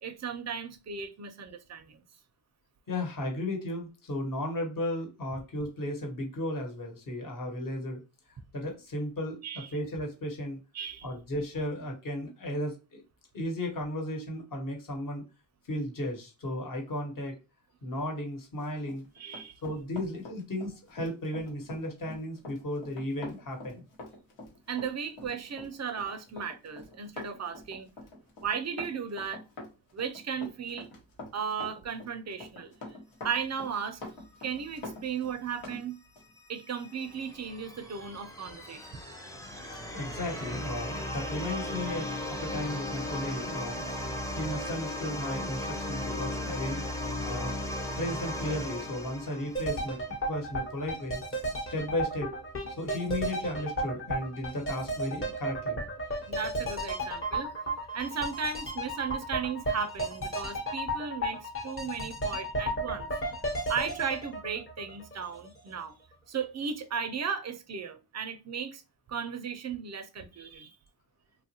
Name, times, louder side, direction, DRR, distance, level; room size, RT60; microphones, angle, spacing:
voice 1, 0.0-2.0 9.4-9.7 10.7-11.1 19.2-19.6 24.7-27.9 28.4-29.4 29.9-30.9 31.3-33.0 33.2-34.0 34.4-36.0 36.5-39.0 56.3-57.5 57.9-63.2 63.7-66.0 66.3-68.8 69.1-70.8, right 6 dB, 35° right, 0.5 m, -35 dB
voice 2, 2.9-8.0 8.5-9.4 9.7-10.6 11.0-13.0 13.3-15.2 15.7-17.3 17.8-19.0 19.6-23.8 39.9-44.1 44.4-46.8 47.2-50.0 50.3-52.3 52.8-55.8, left 1 dB, 45° left, 1.2 m, -35 dB
Run, 18.8-35.8 36.2-36.3, left 2 dB, 75° left, 1.2 m, -45 dB
sound 1, 36.2-50.0, left 1 dB, 5° left, 0.6 m, -36 dB
sound 2, 49.6-65.5 65.8-65.9, right 1 dB, 30° left, 1.0 m, -34 dB
3.0 x 2.3 x 2.8 m
cardioid pair, 75°, 46 cm